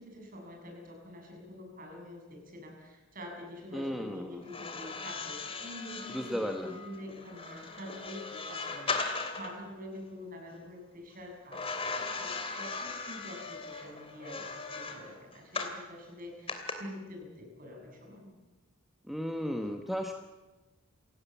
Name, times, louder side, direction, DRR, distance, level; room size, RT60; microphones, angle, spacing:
voice 1, 0.0-18.3, left 1 dB, 40° right, 2 dB, 7.3 m, -46 dB
voice 2, 3.7-4.4 6.1-6.8 19.1-20.1, equal, ahead, 3 dB, 1.3 m, -34 dB
sound 1, 4.4-9.6 11.5-15.8 16.5-16.7, left 4 dB, 25° left, 2.9 m, -38 dB
29.0 x 17.5 x 7.3 m, 1.2 s
head